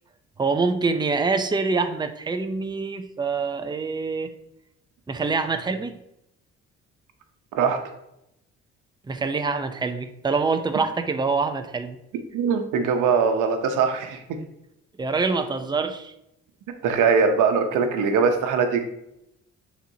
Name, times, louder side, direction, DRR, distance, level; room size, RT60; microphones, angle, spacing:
voice 1, 0.4-4.3 5.1-6.0 9.1-12.0 15.0-16.1, right 4 dB, 15° right, 7 dB, 0.6 m, -25 dB
voice 2, 12.3-14.2 16.8-18.8, right 5 dB, 90° right, 6 dB, 0.9 m, -21 dB
9.0 x 4.3 x 2.8 m, 0.82 s
cardioid pair, 90°, 30 cm